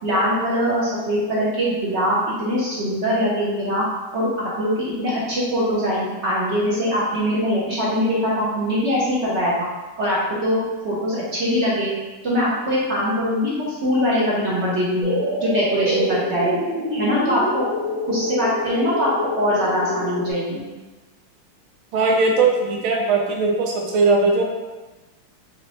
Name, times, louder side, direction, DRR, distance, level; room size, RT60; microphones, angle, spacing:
voice 1, 0.0-3.8 4.1-9.7 10.0-11.9 12.2-15.1 15.4-16.5 16.9-17.7 18.1-20.6, equal, 55° right, -7 dB, 0.8 m, -22 dB
sound 1, 15.0-20.3, left 1 dB, 30° right, 1.1 m, -26 dB
voice 2, 21.9-24.4, right 3 dB, 80° right, 0 dB, 1.5 m, -19 dB
4.0 x 3.2 x 2.9 m, 1.2 s
omnidirectional pair, 2.3 m